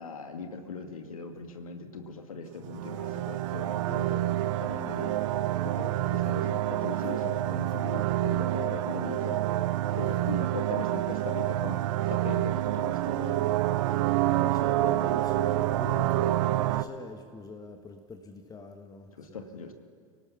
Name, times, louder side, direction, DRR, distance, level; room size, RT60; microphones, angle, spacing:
voice 1, 0.0-5.2 5.6-9.5 9.9-13.4 19.2-19.7, left 4 dB, 80° left, 6 dB, 2.0 m, -40 dB
sound 1, 2.6-16.9, right 14 dB, 65° right, 0.8 m, -28 dB
voice 2, 14.3-19.7, left 3 dB, 20° left, 5 dB, 1.8 m, -44 dB
30.0 x 18.5 x 5.8 m, 2.1 s
figure-of-eight pair, 80°, 18 cm